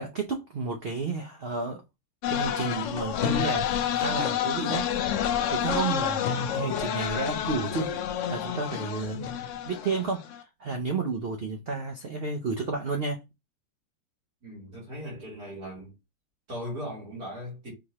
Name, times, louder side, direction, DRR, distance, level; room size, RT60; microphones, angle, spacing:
voice 1, 0.0-1.8 2.3-5.1 5.5-6.2 6.5-7.9 8.3-9.3 9.7-13.2, right 3 dB, 85° right, 0.5 m, -31 dB
sound 1, 2.2-10.4, left 9 dB, 80° left, 0.6 m, -29 dB
voice 2, 14.4-15.9 16.5-17.7, equal, 60° right, 3.2 m, -38 dB
5.0 x 3.1 x 2.8 m
omnidirectional pair, 1.9 m